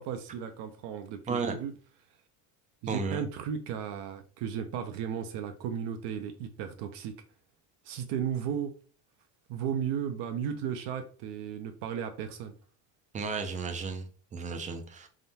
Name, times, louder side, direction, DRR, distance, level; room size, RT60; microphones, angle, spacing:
voice 1, 0.0-1.7 2.8-7.2 7.8-8.8 9.5-12.5, right 8 dB, 60° right, 0.6 m, -35 dB
voice 2, 2.9-3.2 13.1-14.1 14.3-15.1, right 4 dB, 20° right, 0.4 m, -33 dB
3.6 x 2.2 x 2.7 m
supercardioid pair, 115°, 47 cm